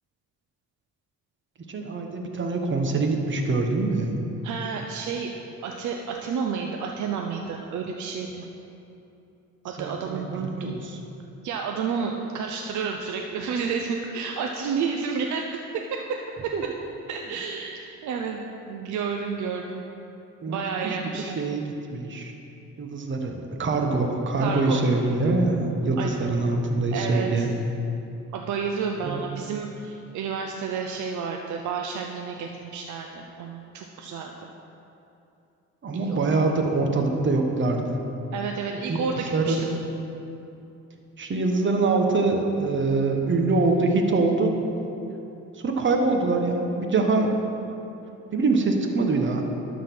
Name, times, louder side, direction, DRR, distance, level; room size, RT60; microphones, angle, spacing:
voice 1, 1.7-4.2 9.8-11.0 16.5-16.6 20.4-22.3 22.8-27.5 29.0-29.2 35.8-37.9 38.9-39.0 39.3-39.6 41.2-44.5 45.6-47.3 48.3-49.4, right 3 dB, 40° right, 3 dB, 1.2 m, -24 dB
voice 2, 4.4-5.3 5.6-8.5 9.6-10.7 11.4-16.5 17.1-18.4 18.7-19.8 20.5-21.4 24.4-24.8 26.0-26.1 26.9-27.5 28.3-34.5 36.0-36.2 38.3-39.7, right 5 dB, 70° right, 2 dB, 0.6 m, -30 dB
12.0 x 4.1 x 6.0 m, 2.8 s
cardioid pair, 90°, 30 cm